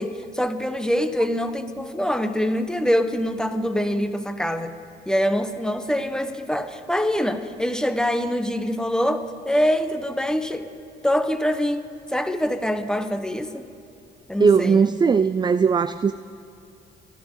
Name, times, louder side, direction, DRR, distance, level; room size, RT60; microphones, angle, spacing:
voice 1, 0.0-4.7 5.1-10.7 11.0-13.6 14.3-14.8, equal, 5° left, 8 dB, 1.1 m, -24 dB
voice 2, 14.4-16.1, right 5 dB, 20° right, 13 dB, 0.3 m, -18 dB
28.0 x 12.5 x 3.8 m, 2.8 s
cardioid pair, 90°, 20 cm